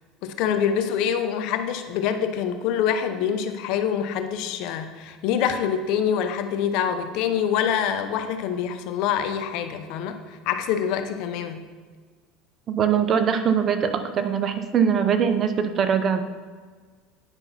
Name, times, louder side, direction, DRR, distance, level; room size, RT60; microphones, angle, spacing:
voice 1, 0.2-11.6, left 8 dB, 65° left, 8 dB, 0.7 m, -25 dB
voice 2, 12.7-16.2, right 7 dB, 40° right, 9 dB, 0.8 m, -22 dB
9.9 x 5.6 x 4.1 m, 1.5 s
supercardioid pair, 100°, 0 cm